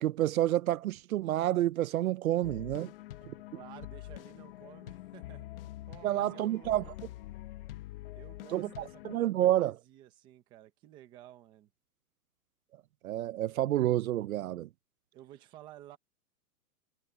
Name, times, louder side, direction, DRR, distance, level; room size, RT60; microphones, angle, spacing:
voice 1, 0.0-2.9 3.3-3.4 6.0-6.8 8.5-9.8 13.0-14.7, right 14 dB, 60° right, 0.6 m, -29 dB
sound 1, 2.4-9.2, left 15 dB, 35° left, 1.2 m, -46 dB
voice 2, 3.5-5.5 5.9-6.7 8.2-11.7 15.1-16.0, right 13 dB, 10° right, 0.7 m, -53 dB
hypercardioid pair, 170°, 47 cm